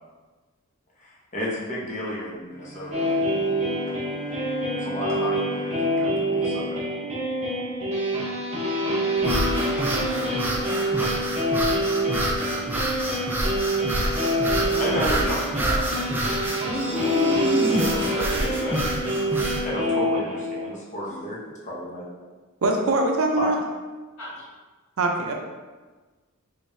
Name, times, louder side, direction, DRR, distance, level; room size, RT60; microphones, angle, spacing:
voice 1, 1.0-3.2 4.7-6.8 14.6-17.4 17.7-18.8 19.6-22.0 23.4-23.5, equal, 35° left, -5 dB, 0.9 m, -32 dB
Bowed string instrument, 2.5-7.7, left 2 dB, 15° left, 1.4 m, -39 dB
sound 1, 2.9-20.7, equal, 30° right, 0.9 m, -26 dB
sound 2, 9.2-19.7, right 1 dB, 10° right, 0.4 m, -27 dB
voice 2, 10.6-11.1 13.6-14.6 24.2-24.4, left 1 dB, 75° left, -8 dB, 1.5 m, -40 dB
voice 3, 22.6-23.6 25.0-25.3, right 2 dB, 70° right, 2 dB, 0.5 m, -22 dB
3.7 x 3.3 x 2.7 m, 1.3 s
head